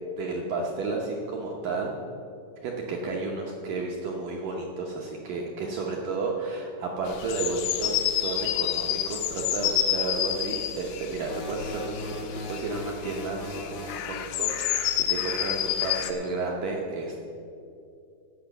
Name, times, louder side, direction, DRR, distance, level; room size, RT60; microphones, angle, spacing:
voice 1, 0.1-1.9 2.6-17.3, right 3 dB, 75° right, -1 dB, 1.9 m, -32 dB
sound 1, 7.1-12.8 13.0-16.1, left 11 dB, 80° left, 2.4 m, -29 dB
sound 2, 11.2-14.1, left 2 dB, 60° left, 0.8 m, -38 dB
15.0 x 5.7 x 7.1 m, 2.5 s
omnidirectional pair, 5.0 m